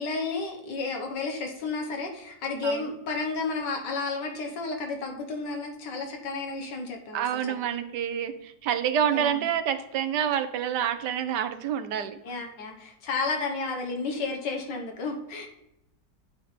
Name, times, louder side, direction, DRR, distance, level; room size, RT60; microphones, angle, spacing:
voice 1, 0.0-7.5 9.1-9.4 12.2-15.5, left 3 dB, 85° left, 3 dB, 1.8 m, -32 dB
voice 2, 7.1-12.2, right 9 dB, 80° right, 9 dB, 1.3 m, -28 dB
8.9 x 3.6 x 5.5 m, 0.85 s
omnidirectional pair, 1.8 m